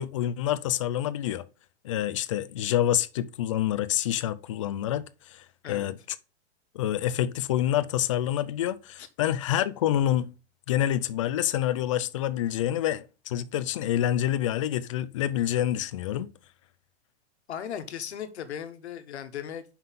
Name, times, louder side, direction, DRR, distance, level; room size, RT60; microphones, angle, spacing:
voice 1, 0.0-1.4 1.8-5.9 6.7-10.3 10.7-16.3, left 12 dB, 30° left, 0.4 m, -27 dB
voice 2, 17.5-19.6, left 9 dB, 75° left, 1.4 m, -37 dB
5.7 x 5.5 x 5.7 m
hypercardioid pair, 160°, 33 cm